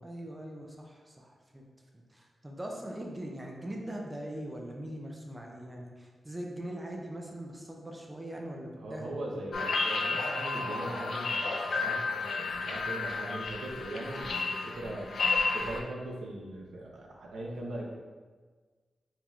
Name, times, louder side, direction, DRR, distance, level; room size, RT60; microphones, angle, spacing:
voice 1, 0.0-1.6 1.9-9.1, right 1 dB, 10° right, 0 dB, 0.4 m, -41 dB
voice 2, 8.8-15.1 15.5-17.8, right 1 dB, 90° right, -1 dB, 0.6 m, -40 dB
sound 1, 9.5-15.8, left 4 dB, 60° left, 0.4 m, -32 dB
4.3 x 3.7 x 2.3 m, 1.4 s
wide cardioid pair, 165°, 0 cm